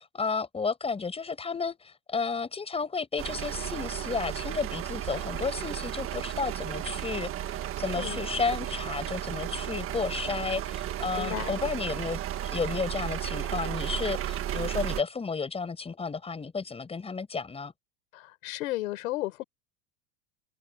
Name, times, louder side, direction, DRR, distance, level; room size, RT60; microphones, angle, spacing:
voice 1, 0.0-7.3 7.8-17.7, left 5 dB, 15° left, 5.3 m, -32 dB
sound 1, 3.2-15.0, right 12 dB, 35° right, 1.7 m, -34 dB
voice 2, 11.2-11.6 18.1-19.4, left 17 dB, 85° left, 5.1 m, -33 dB
supercardioid pair, 140°, 40 cm